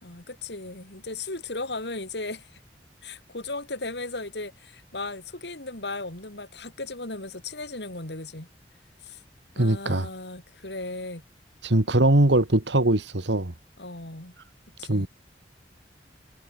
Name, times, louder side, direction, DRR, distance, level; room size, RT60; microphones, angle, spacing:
voice 1, 0.0-2.5 3.0-8.5 9.0-9.2 9.6-11.2 13.8-14.3 14.8-15.1, left 2 dB, 70° left, 4.1 m, -36 dB
voice 2, 9.6-10.1 11.6-13.5 14.9-15.1, right 1 dB, 85° right, 2.0 m, -21 dB
head